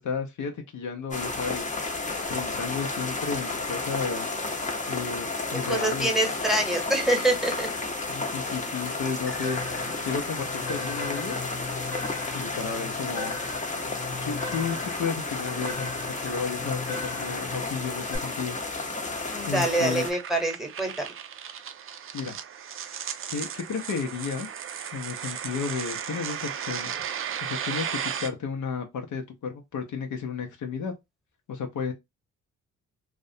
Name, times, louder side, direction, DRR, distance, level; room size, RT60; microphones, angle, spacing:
voice 1, 0.0-1.7 2.3-4.3 4.9-6.1 8.1-11.4 12.3-13.6 14.2-18.6 19.4-20.1 22.1-22.4 23.3-24.6 24.9-27.0 27.4-30.9 31.5-31.9, left 5 dB, 60° left, 0.7 m, -33 dB
sound 1, 1.1-20.1, left 3 dB, 20° left, 0.8 m, -32 dB
voice 2, 5.5-7.7 19.3-21.1, right 1 dB, ahead, 1.0 m, -26 dB
sound 2, 9.2-18.2, left 3 dB, 80° left, 0.9 m, -37 dB
sound 3, 17.6-28.3, right 8 dB, 40° right, 0.4 m, -36 dB
2.4 x 2.1 x 2.7 m
supercardioid pair, 55°, 35 cm